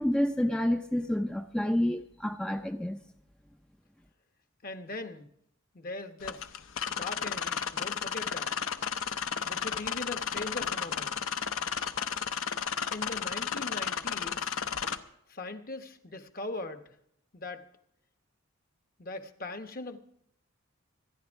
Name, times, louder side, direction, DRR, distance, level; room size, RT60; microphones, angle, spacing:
voice 1, 0.0-3.0, left 1 dB, 5° left, 0.4 m, -29 dB
voice 2, 4.6-5.3 5.7-6.5 6.9-8.5 9.4-11.2 12.9-14.6 15.3-17.0 17.3-17.6 19.0-20.0, left 2 dB, 45° left, 1.1 m, -40 dB
sound 1, 6.2-15.0, left 7 dB, 85° left, 0.8 m, -33 dB
26.0 x 10.5 x 3.5 m
head